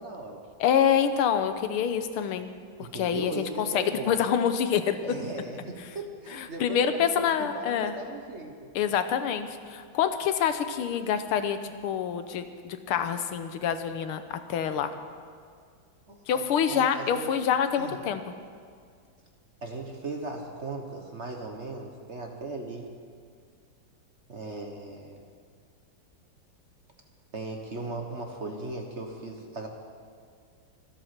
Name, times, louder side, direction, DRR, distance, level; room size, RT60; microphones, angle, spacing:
voice 1, 0.0-0.4 2.8-4.2 5.0-8.5 16.1-17.3 17.8-18.0 19.6-22.9 24.3-25.2 27.3-29.7, right 2 dB, 40° right, 2 dB, 1.2 m, -38 dB
voice 2, 0.6-2.5 2.8-5.0 6.3-7.9 8.8-14.9 16.3-18.2, left 8 dB, 85° left, 9 dB, 1.8 m, -26 dB
25.0 x 8.3 x 5.9 m, 2.1 s
omnidirectional pair, 2.3 m